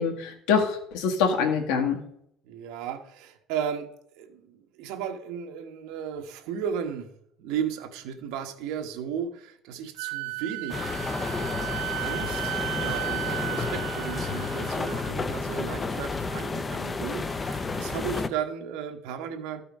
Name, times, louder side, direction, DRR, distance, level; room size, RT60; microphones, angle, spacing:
voice 1, 0.0-2.0, left 6 dB, 80° left, 2 dB, 1.8 m, -25 dB
voice 2, 2.4-3.9 4.2-7.1 7.4-19.6, right 8 dB, 65° right, 5 dB, 1.3 m, -35 dB
Wind instrument woodwind instrument, 10.0-15.1, right 24 dB, 90° right, 0.4 m, -35 dB
sound 1, 10.7-18.3, left 4 dB, 15° left, 0.4 m, -31 dB
13.0 x 5.5 x 5.3 m, 0.71 s
cardioid pair, 175°, 0 cm